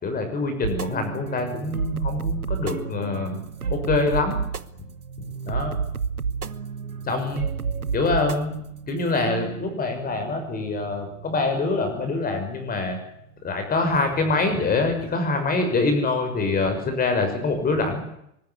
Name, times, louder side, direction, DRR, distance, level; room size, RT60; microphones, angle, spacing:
voice 1, 0.0-3.4 3.7-4.4 5.4-5.8 7.1-7.5 7.9-8.5 8.9-13.0 13.4-18.0, left 3 dB, 20° left, 6 dB, 6.2 m, -25 dB
sound 1, 0.6-13.2, right 6 dB, 80° right, 1.2 m, -31 dB
23.0 x 20.5 x 9.7 m, 0.78 s
figure-of-eight pair, 95°, 43 cm